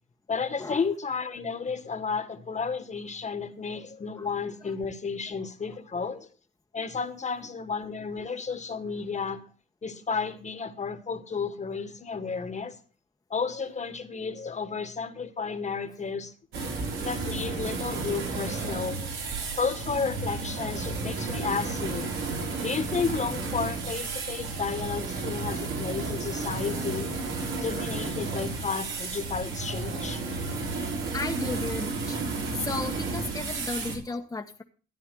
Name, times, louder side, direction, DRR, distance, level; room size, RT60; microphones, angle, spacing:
voice 1, 0.3-6.3 6.7-9.4 9.8-12.7 13.3-16.3 17.0-19.1 19.6-22.1 22.6-30.2 34.1-34.2, left 5 dB, 35° left, 1.7 m, -32 dB
sound 1, 16.5-34.0, right 3 dB, 80° right, 4.7 m, -32 dB
voice 2, 31.1-32.2 32.5-34.6, left 3 dB, 15° left, 1.3 m, -34 dB
13.5 x 10.0 x 3.8 m
cardioid pair, 90°, 20 cm